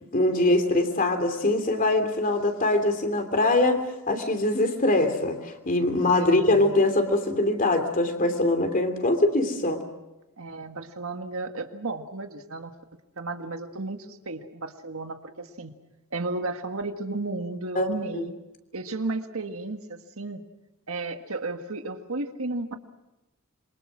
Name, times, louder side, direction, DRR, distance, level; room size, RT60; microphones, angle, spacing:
voice 1, 0.1-3.8 4.1-9.8 17.7-17.8 18.1-18.3, left 2 dB, 40° left, 6 dB, 3.1 m, -23 dB
voice 2, 10.4-12.7 13.2-15.8 16.1-18.3 18.7-20.4 20.9-22.8, right 2 dB, 70° right, 6 dB, 1.8 m, -33 dB
27.0 x 23.5 x 6.3 m, 0.97 s
head